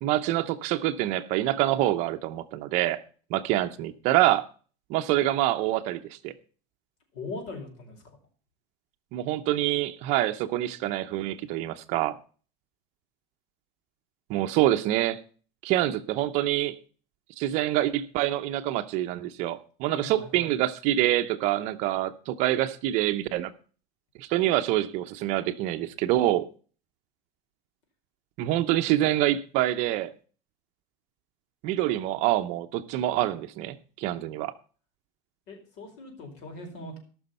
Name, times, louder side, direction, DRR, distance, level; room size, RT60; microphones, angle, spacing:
voice 1, 0.0-3.0 3.3-4.4 4.9-6.3 9.1-12.2 14.3-15.2 15.6-16.8 17.4-23.5 24.2-26.5 28.4-30.1 31.6-34.5, right 14 dB, 50° right, 10 dB, 0.8 m, -26 dB
voice 2, 7.1-8.2 19.9-20.6 35.5-37.0, left 2 dB, 50° left, 3 dB, 4.9 m, -40 dB
17.5 x 6.3 x 5.5 m, 0.40 s
cardioid pair, 165°, 15 cm